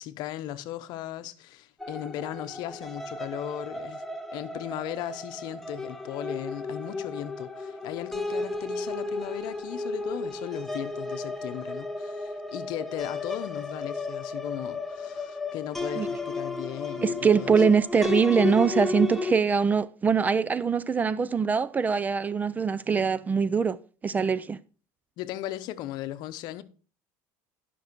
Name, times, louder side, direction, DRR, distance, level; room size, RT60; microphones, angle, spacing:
voice 1, 0.0-4.0 4.3-17.6 25.2-26.6, left 13 dB, 60° left, 0.8 m, -37 dB
sound 1, 1.8-19.3, left 3 dB, 5° left, 1.0 m, -34 dB
voice 2, 17.0-23.8 24.0-24.6, right 6 dB, 20° right, 0.4 m, -23 dB
12.0 x 6.1 x 4.6 m
supercardioid pair, 125°, 8 cm